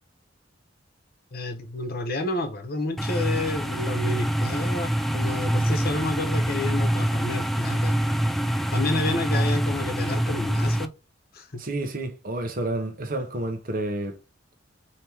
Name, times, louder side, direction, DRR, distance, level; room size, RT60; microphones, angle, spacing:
voice 1, 1.3-8.0 8.7-10.9 11.3-11.6, left 2 dB, 55° left, 1.1 m, -30 dB
sound 1, 3.0-10.9, right 1 dB, ahead, 0.3 m, -25 dB
voice 2, 11.6-14.2, right 2 dB, 50° right, 0.8 m, -30 dB
4.4 x 2.9 x 3.4 m
head